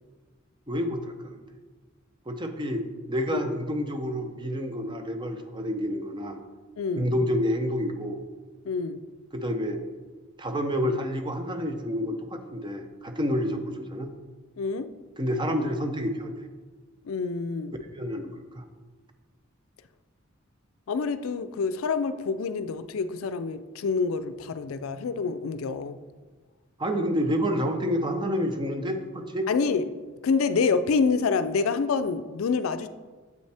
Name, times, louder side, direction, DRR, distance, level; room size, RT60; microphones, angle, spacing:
voice 1, 0.7-1.4 2.3-2.8 3.1-6.4 6.9-8.2 9.3-9.8 10.4-14.1 15.2-16.5 17.9-18.6 26.8-29.5, equal, 25° right, 6 dB, 0.6 m, -29 dB
voice 2, 6.8-7.1 8.7-9.0 14.6-14.9 17.0-17.7 20.9-26.0 29.5-29.9 30.2-32.9, left 5 dB, 85° left, 11 dB, 0.4 m, -27 dB
7.8 x 5.4 x 3.4 m, 1.4 s
head